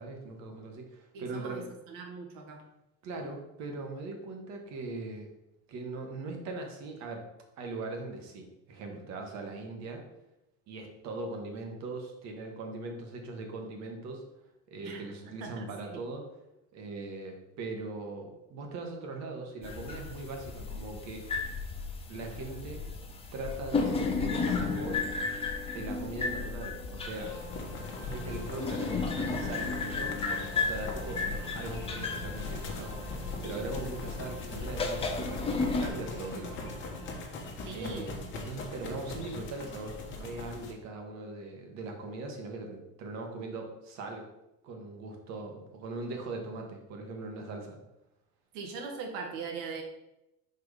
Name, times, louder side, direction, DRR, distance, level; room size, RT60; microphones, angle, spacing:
voice 1, 0.0-1.7 3.0-5.3 5.7-7.3 7.6-10.0 10.7-14.2 14.7-16.2 16.7-21.3 22.1-22.8 23.3-25.0 25.7-27.4 28.1-36.9 37.7-44.2 44.6-47.8, right 2 dB, 50° right, 3 dB, 1.5 m, -40 dB
voice 2, 1.1-2.6 14.8-16.0 37.6-38.1 48.5-49.8, right 4 dB, 65° right, 3 dB, 1.6 m, -41 dB
sound 1, 19.6-35.9, left 4 dB, 15° left, 0.7 m, -34 dB
sound 2, 27.0-40.7, left 2 dB, 35° left, 1.3 m, -42 dB
sound 3, 27.2-37.2, left 1 dB, 5° right, 1.7 m, -48 dB
5.8 x 4.7 x 4.9 m, 0.93 s
cardioid pair, 155°, 35 cm